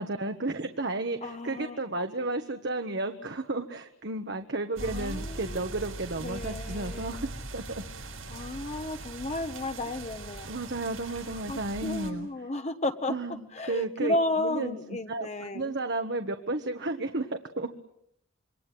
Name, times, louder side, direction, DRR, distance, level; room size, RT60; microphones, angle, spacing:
voice 1, 0.0-7.8 10.4-12.5 13.1-17.7, right 2 dB, 55° right, 6 dB, 1.4 m, -33 dB
voice 2, 1.2-1.8 4.8-5.6 6.2-7.2 8.3-10.5 11.5-13.1 13.5-15.7, left 2 dB, 35° left, 7 dB, 1.2 m, -33 dB
sound 1, 4.8-12.1, right 2 dB, 90° right, 7.6 m, -40 dB
27.5 x 24.0 x 7.8 m, 0.76 s
head